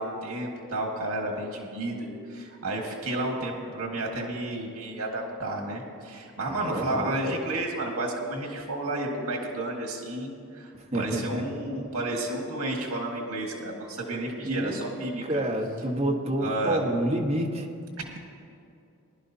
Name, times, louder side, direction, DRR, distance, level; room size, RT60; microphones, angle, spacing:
voice 1, 0.0-15.2 16.4-16.8 18.0-18.2, right 1 dB, 75° right, 0 dB, 1.7 m, -32 dB
voice 2, 6.5-7.4 10.9-11.4 14.4-14.8 15.2-17.7, right 1 dB, 25° right, 1 dB, 1.2 m, -28 dB
20.5 x 11.0 x 2.8 m, 2.5 s
head